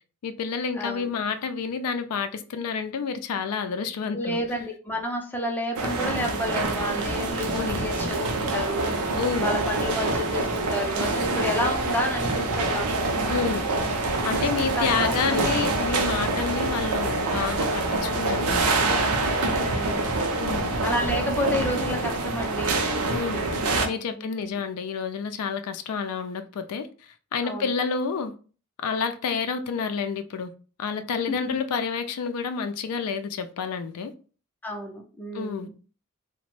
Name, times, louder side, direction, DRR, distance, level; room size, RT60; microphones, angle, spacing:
voice 1, 0.2-4.4 7.5-7.9 9.1-9.5 13.3-13.6 14.2-18.6 20.4-20.7 23.1-23.4 23.8-26.9 27.3-28.3 28.8-30.5 30.8-34.1 35.3-35.7, left 5 dB, 90° left, 0.4 m, -29 dB
voice 2, 0.7-1.1 4.1-8.9 9.4-12.9 14.8-15.5 19.2-20.3 20.8-22.8 24.1-24.6 27.4-27.7 31.3-31.6 34.6-35.7, left 1 dB, 10° left, 0.4 m, -31 dB
sound 1, 5.8-23.9, right 2 dB, 85° right, 0.5 m, -26 dB
2.9 x 2.1 x 3.0 m
head